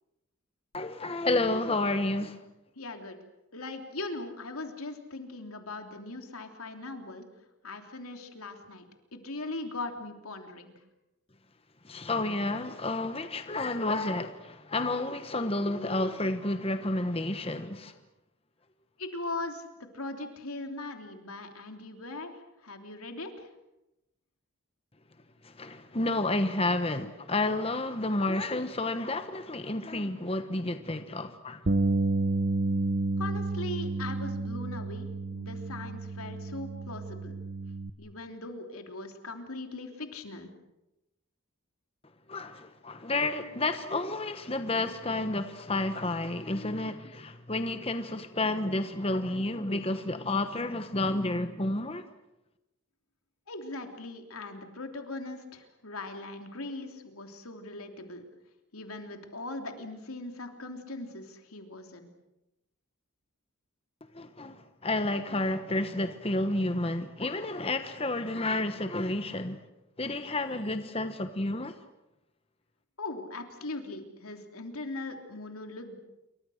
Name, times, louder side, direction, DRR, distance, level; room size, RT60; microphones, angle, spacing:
voice 1, 0.7-2.4 11.8-17.9 25.4-31.6 42.3-52.0 64.1-69.6 70.0-71.7, left 2 dB, 25° left, 1.1 m, -30 dB
voice 2, 2.8-3.2 3.5-7.2 7.6-8.8 9.1-10.7 19.0-19.6 19.9-22.3 22.6-23.5 33.2-37.4 38.0-40.5 53.5-58.2 58.7-62.1 73.0-76.0, left 2 dB, 85° left, 3.3 m, -40 dB
Bass guitar, 31.7-37.9, right 2 dB, 45° right, 0.8 m, -30 dB
28.0 x 24.5 x 6.5 m
head